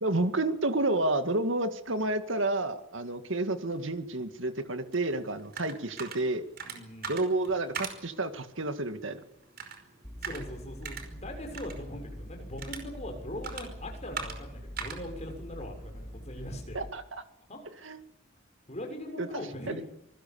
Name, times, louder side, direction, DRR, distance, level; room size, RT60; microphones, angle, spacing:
voice 1, 0.0-6.5 7.1-9.2 16.7-17.2 17.8-18.0 19.2-19.3 19.7-19.8, right 2 dB, 70° right, 9 dB, 2.1 m, -30 dB
sound 1, 4.9-16.6, right 6 dB, 50° right, 5.1 m, -44 dB
voice 2, 6.7-7.2 10.2-16.8 17.5-17.6 18.7-19.8, left 1 dB, 35° left, 3 dB, 6.7 m, -41 dB
sound 2, 10.0-16.9, equal, 5° left, 2.9 m, -44 dB
26.0 x 20.0 x 7.2 m, 0.87 s
head